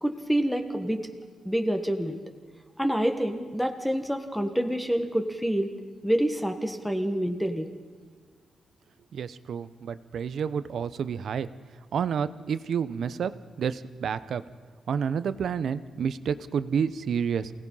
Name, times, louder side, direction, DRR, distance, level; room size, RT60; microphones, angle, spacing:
voice 1, 0.0-1.1 1.4-2.2 2.8-5.7 6.0-7.7, equal, ahead, 6 dB, 1.6 m, -27 dB
voice 2, 9.1-11.5 11.9-13.3 13.6-14.4 14.9-17.5, right 7 dB, 70° right, 14 dB, 0.8 m, -29 dB
28.0 x 18.0 x 5.6 m, 1.5 s
wide cardioid pair, 140°, 0 cm